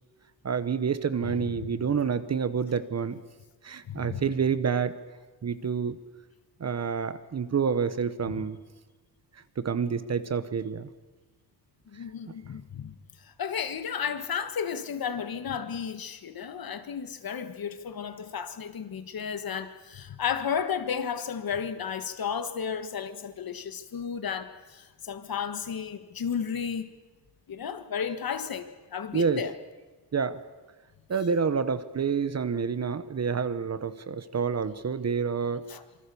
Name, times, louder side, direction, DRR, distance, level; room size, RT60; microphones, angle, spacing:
voice 1, 0.4-3.2 3.6-4.9 5.4-6.0 6.6-8.6 9.6-10.9 29.1-29.4 30.1-30.4 31.1-35.6, right 6 dB, 40° right, 1.0 m, -28 dB
voice 2, 1.2-1.8 3.9-4.3 8.3-8.4 11.9-26.9 27.5-29.5 35.7-35.8, left 7 dB, 55° left, 1.6 m, -33 dB
26.5 x 25.0 x 7.0 m
wide cardioid pair, 175°, 41 cm